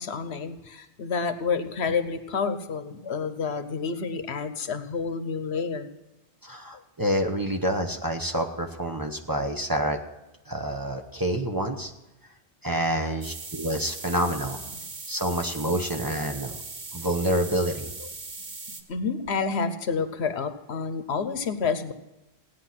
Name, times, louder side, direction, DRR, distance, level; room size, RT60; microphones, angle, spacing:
voice 1, 0.0-5.9 18.0-18.1 18.9-21.9, left 5 dB, 80° left, 10 dB, 1.2 m, -29 dB
voice 2, 6.4-10.0 10.5-11.9 12.6-14.6 15.1-16.6 16.9-17.9, right 1 dB, 20° right, 4 dB, 1.0 m, -27 dB
sound 1, 13.2-18.8, right 3 dB, 45° right, 1.3 m, -39 dB
17.0 x 9.5 x 5.9 m, 1.0 s
omnidirectional pair, 1.1 m